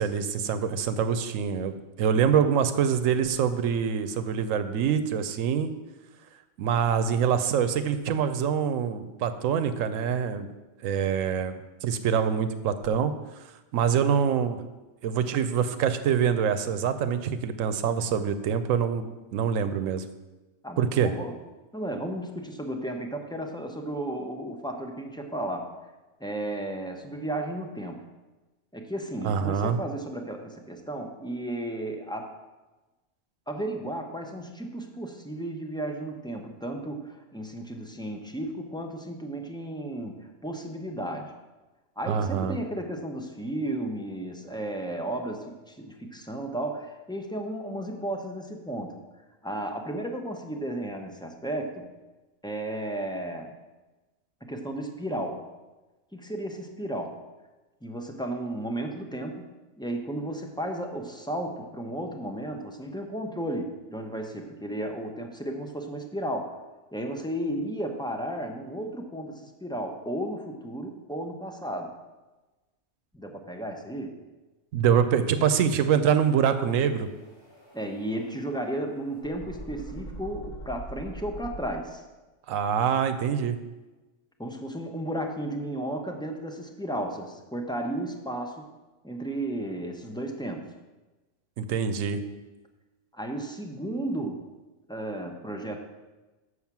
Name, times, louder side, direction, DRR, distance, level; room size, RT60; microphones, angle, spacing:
voice 1, 0.0-1.7 2.0-5.7 6.6-10.5 10.8-13.1 13.7-14.6 15.0-20.0 20.8-21.1 29.2-29.8 42.1-42.6 74.7-77.1 82.5-83.6 91.6-92.2, right 7 dB, 90° right, 10 dB, 1.0 m, -25 dB
voice 2, 20.6-21.3 21.7-25.7 26.2-28.0 28.7-32.3 33.5-41.3 42.0-49.0 49.4-51.9 52.4-53.5 54.4-55.4 56.1-57.1 57.8-66.5 66.9-71.9 73.1-74.2 77.7-82.0 84.4-88.7 89.0-90.7 93.1-94.4 94.9-95.8, right 1 dB, 5° left, 3 dB, 0.6 m, -34 dB
sound 1, 76.6-81.6, right 2 dB, 75° left, 4.1 m, -43 dB
7.2 x 6.5 x 5.9 m, 1.2 s
omnidirectional pair, 1.3 m